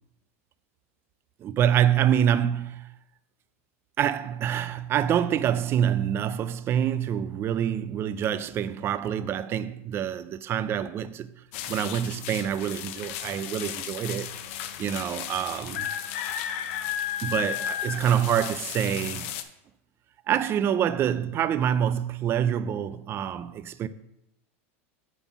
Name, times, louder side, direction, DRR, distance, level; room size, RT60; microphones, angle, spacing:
voice 1, 1.4-2.9 4.0-11.3 11.7-14.3 14.8-15.9 17.2-19.3 20.3-23.9, right 9 dB, 30° right, 0.4 m, -26 dB
sound 1, 11.5-19.4, left 10 dB, 65° left, 0.7 m, -34 dB
7.0 x 4.1 x 5.8 m
supercardioid pair, 125°, 8 cm